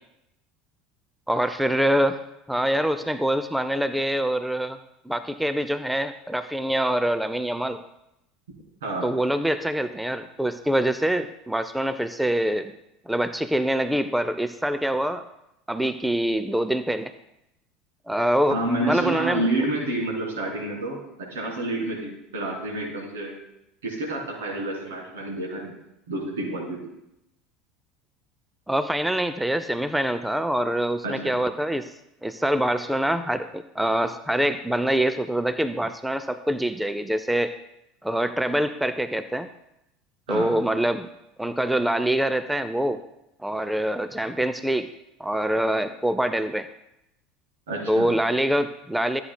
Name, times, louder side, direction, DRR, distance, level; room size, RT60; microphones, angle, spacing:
voice 1, 1.3-2.2 2.5-4.8 5.1-7.8 9.0-12.8 13.1-15.2 15.7-17.1 18.1-18.6 18.8-19.4 28.7-31.9 32.2-37.5 38.0-39.5 40.3-41.1 41.4-43.0 43.4-44.9 45.2-46.7 47.9-49.2, right 1 dB, 5° right, 11 dB, 0.4 m, -25 dB
voice 2, 18.5-23.4 23.8-25.7 26.1-26.8 31.0-31.3 40.3-40.5 47.7-48.1, right 2 dB, 70° right, -1 dB, 3.0 m, -29 dB
13.5 x 8.7 x 2.2 m, 0.85 s
figure-of-eight pair, 70°, 0 cm